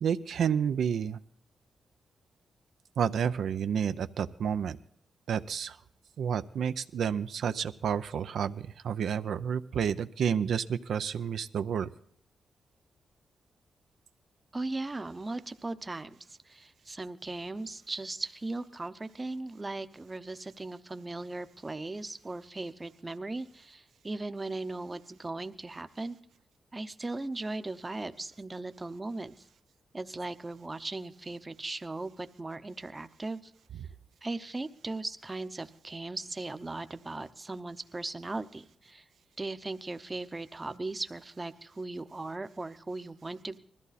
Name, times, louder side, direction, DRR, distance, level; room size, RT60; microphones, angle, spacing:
voice 1, 0.0-1.2 3.0-4.8 5.3-5.8 6.2-11.9, right 7 dB, 80° right, 10 dB, 0.5 m, -30 dB
voice 2, 14.5-26.2 26.7-29.3 29.9-33.5 34.2-39.0 39.4-43.6, right 2 dB, 20° right, 10 dB, 0.7 m, -38 dB
20.5 x 14.0 x 4.1 m, 0.63 s
cardioid pair, 105°, 0 cm